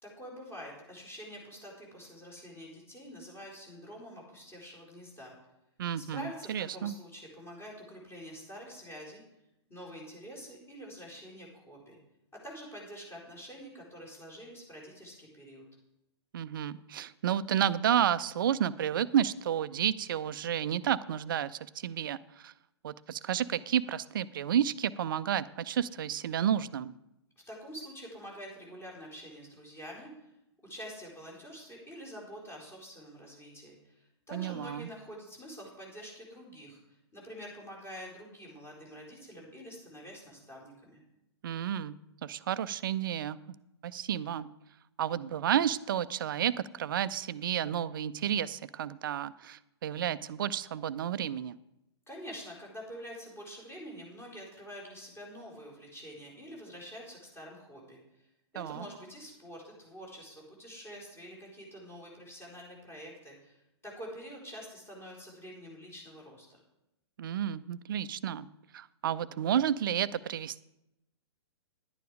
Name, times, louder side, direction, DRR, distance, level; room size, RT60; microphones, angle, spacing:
voice 1, 0.0-5.3 5.9-9.2 9.7-12.0 12.4-15.6 27.5-30.1 30.6-41.0 52.1-58.2 58.5-66.6, equal, 15° left, -2 dB, 4.1 m, -47 dB
voice 2, 5.8-6.9 16.3-22.5 22.8-26.9 34.3-34.9 41.4-41.9 42.2-43.4 43.8-44.5 45.0-51.6 58.6-58.8 67.2-68.5 68.7-70.6, right 9 dB, 50° right, 16 dB, 0.5 m, -31 dB
11.0 x 9.3 x 4.9 m, 0.87 s
figure-of-eight pair, 115°, 14 cm